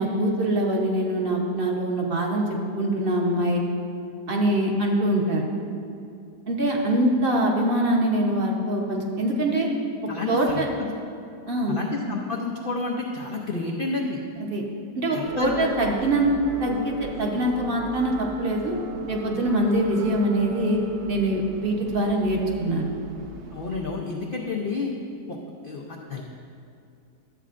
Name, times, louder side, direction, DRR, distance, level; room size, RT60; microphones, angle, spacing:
voice 1, 0.0-2.5 2.8-3.6 4.3-5.4 6.5-9.7 10.3-10.7 11.5-11.8 14.4-14.6 15.0-16.3 16.6-18.7 19.1-20.8 21.1-22.9, right 1 dB, 45° right, -1 dB, 0.8 m, -23 dB
voice 2, 10.1-10.9 11.7-14.2 15.1-15.5 23.5-24.9 25.3-25.4 25.6-26.2, left 3 dB, 90° left, -1 dB, 0.4 m, -30 dB
sound 1, 15.2-23.8, right 4 dB, 75° right, 1.2 m, -39 dB
12.5 x 8.3 x 2.5 m, 2.5 s
omnidirectional pair, 1.8 m